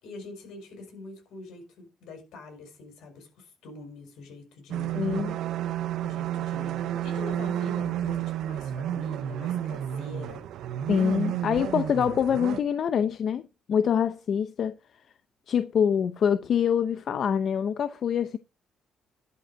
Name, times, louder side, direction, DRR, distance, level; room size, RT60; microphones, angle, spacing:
voice 1, 0.0-5.0 6.0-10.5, left 3 dB, 85° left, 5.3 m, -44 dB
sound 1, 4.7-12.6, right 11 dB, 80° right, 0.6 m, -31 dB
voice 2, 4.9-5.4 10.9-14.8 15.5-18.4, left 8 dB, 60° left, 0.7 m, -25 dB
11.0 x 5.1 x 6.4 m
cardioid pair, 90°, 0 cm